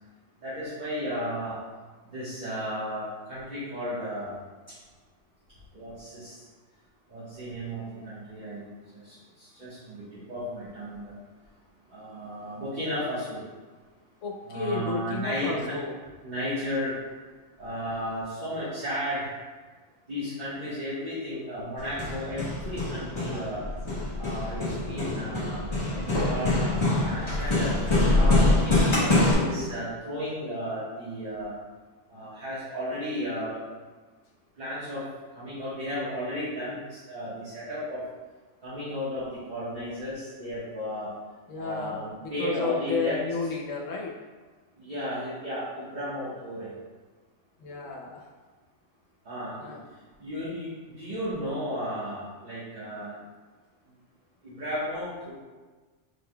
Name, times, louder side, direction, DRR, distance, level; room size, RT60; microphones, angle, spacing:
voice 1, 0.4-1.6 2.0-4.4 5.7-6.4 7.1-8.7 9.0-11.1 11.9-13.4 14.5-15.7 16.2-16.9 17.6-19.3 20.1-23.6 24.2-27.7 28.1-31.5 32.1-33.6 34.6-35.0 35.3-38.0 38.6-41.1 41.5-43.2 44.8-46.7 49.2-49.7 50.2-53.2 54.4-55.3, equal, 35° right, -12 dB, 1.3 m, -34 dB
voice 2, 14.2-16.0 24.6-25.5 41.5-44.1 47.6-48.3 49.6-49.8, left 4 dB, 75° left, -2 dB, 1.1 m, -33 dB
Hammer, 21.8-29.3, left 2 dB, 25° left, 1.0 m, -25 dB
5.5 x 4.0 x 2.2 m, 1.4 s
omnidirectional pair, 1.4 m